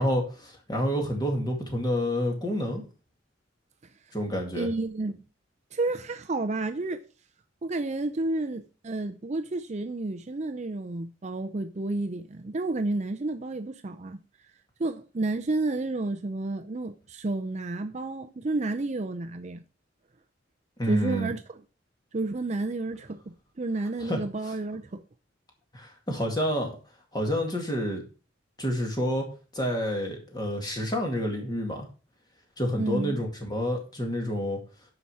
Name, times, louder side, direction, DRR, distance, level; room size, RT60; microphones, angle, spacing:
voice 1, 0.0-2.8 4.1-4.7 20.8-21.3 24.0-24.2 25.7-26.8 27.1-28.0 28.6-29.3 29.5-31.9 32.6-34.6, equal, 20° left, 2.2 m, -28 dB
voice 2, 4.5-5.2 5.7-7.0 7.6-14.2 14.8-19.6 20.8-21.6 22.1-25.0 32.8-33.2, right 2 dB, 35° right, 0.5 m, -31 dB
9.7 x 5.9 x 4.8 m
head